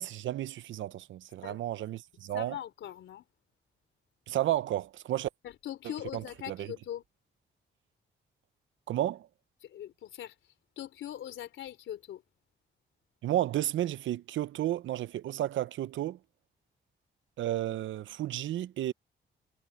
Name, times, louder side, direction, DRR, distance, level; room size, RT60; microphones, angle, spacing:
voice 1, 0.0-2.6 4.3-5.3 6.1-6.7 8.9-9.3 13.2-16.2 17.4-18.9, right 13 dB, 85° right, 0.7 m, -32 dB
voice 2, 2.3-3.2 5.4-7.0 9.6-10.4 10.8-12.2, left 11 dB, 85° left, 3.5 m, -41 dB
cardioid pair, 85°, 19 cm